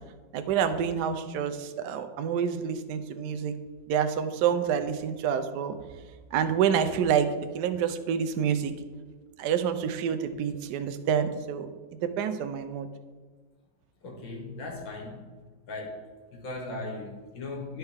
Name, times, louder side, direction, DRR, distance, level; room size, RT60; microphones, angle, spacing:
voice 1, 0.3-3.5 3.9-5.7 6.3-7.3 7.5-8.7 9.4-11.7 12.0-12.9, right 8 dB, 70° right, 9 dB, 1.1 m, -27 dB
voice 2, 14.0-15.3 15.7-16.0 16.3-17.8, left 2 dB, 80° left, 1 dB, 2.2 m, -38 dB
12.0 x 4.4 x 3.5 m, 1.4 s
omnidirectional pair, 2.0 m